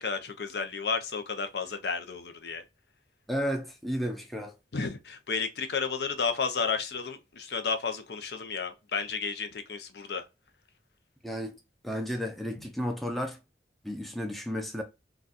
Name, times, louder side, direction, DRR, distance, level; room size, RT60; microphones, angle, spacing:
voice 1, 0.0-2.6 4.7-10.2, left 5 dB, 65° left, 0.6 m, -32 dB
voice 2, 3.3-4.5 11.2-11.6 11.8-13.4 13.8-14.8, equal, ahead, 0.5 m, -32 dB
3.9 x 2.3 x 2.4 m
head